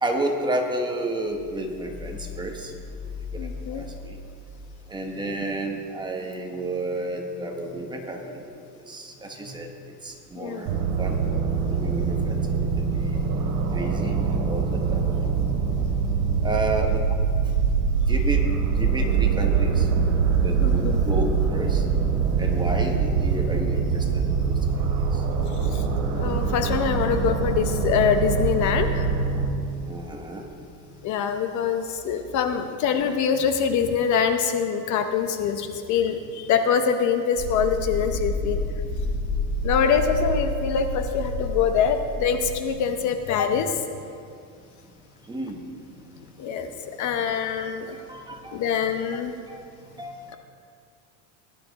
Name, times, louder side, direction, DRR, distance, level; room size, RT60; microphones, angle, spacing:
voice 1, 0.0-2.7 3.3-4.2 4.9-8.4 8.9-9.7 10.0-10.7 11.0-11.2 11.7-13.1 13.7-15.4 16.4-17.1 18.1-18.5 18.7-21.8 22.4-24.8 25.1-25.2 29.9-30.5 45.3-45.6 48.1-48.6 49.1-49.2 49.5-49.6 50.0-50.4, right 1 dB, 10° right, 2 dB, 1.1 m, -31 dB
voice 2, 3.4-3.9 10.4-10.6 20.6-21.0 25.7-25.8 26.1-29.1 31.0-38.6 39.6-43.8 46.4-46.7 47.0-48.0 48.5-49.3, left 7 dB, 45° left, 7 dB, 0.8 m, -24 dB
sound 1, 10.7-29.5, right 5 dB, 80° right, 2.4 m, -23 dB
sound 2, 37.4-42.6, left 1 dB, 5° left, 2.3 m, -29 dB
18.0 x 11.0 x 4.1 m, 2.4 s
cardioid pair, 155°, 43 cm